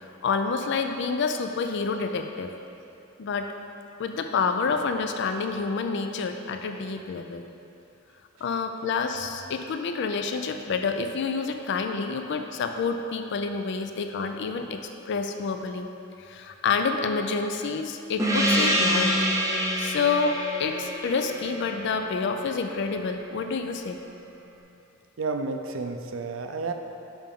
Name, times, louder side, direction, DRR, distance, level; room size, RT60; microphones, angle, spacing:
voice 1, 0.0-2.5 3.2-3.5 4.0-7.5 8.4-15.9 16.2-19.2 19.8-24.0, left 4 dB, 60° left, 6 dB, 0.4 m, -28 dB
Gong, 18.2-23.2, equal, 15° right, 0.6 m, -27 dB
voice 2, 25.2-26.7, right 3 dB, 80° right, 5 dB, 0.5 m, -31 dB
7.1 x 5.6 x 3.6 m, 2.7 s
head